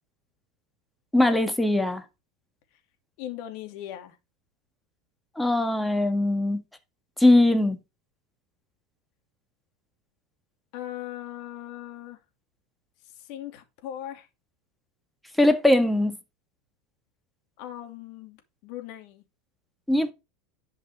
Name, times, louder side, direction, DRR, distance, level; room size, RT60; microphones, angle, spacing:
voice 1, 1.1-2.0 5.4-6.6 7.2-7.8 15.4-16.2 19.9-20.1, left 1 dB, 5° left, 1.8 m, -21 dB
voice 2, 3.2-4.2 10.7-12.2 13.1-14.3 17.6-19.2, left 12 dB, 60° left, 2.6 m, -39 dB
10.5 x 5.5 x 4.9 m
hypercardioid pair, 90°, 0 cm